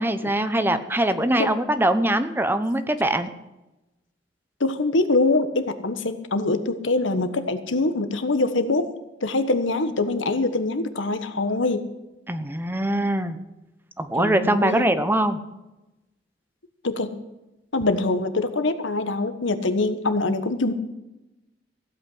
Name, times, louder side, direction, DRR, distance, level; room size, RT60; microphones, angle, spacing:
voice 1, 0.0-3.3 12.3-13.4 14.0-15.4, right 1 dB, 10° right, 10 dB, 0.9 m, -22 dB
voice 2, 4.6-8.9 9.2-11.8 14.2-14.9 16.8-17.1 17.7-20.7, left 2 dB, 90° left, 10 dB, 1.3 m, -24 dB
15.5 x 8.7 x 7.9 m, 0.98 s
head